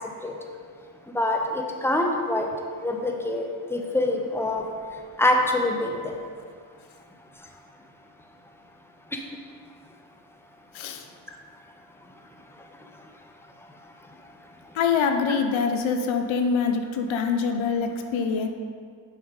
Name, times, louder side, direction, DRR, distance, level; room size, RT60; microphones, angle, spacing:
voice 1, 1.1-2.5 2.8-4.6 5.2-6.1, left 1 dB, 5° left, 1 dB, 1.1 m, -25 dB
voice 2, 10.7-11.1 14.7-18.5, left 5 dB, 75° left, 5 dB, 0.8 m, -24 dB
6.2 x 5.9 x 5.2 m, 2.1 s
supercardioid pair, 55°, 48 cm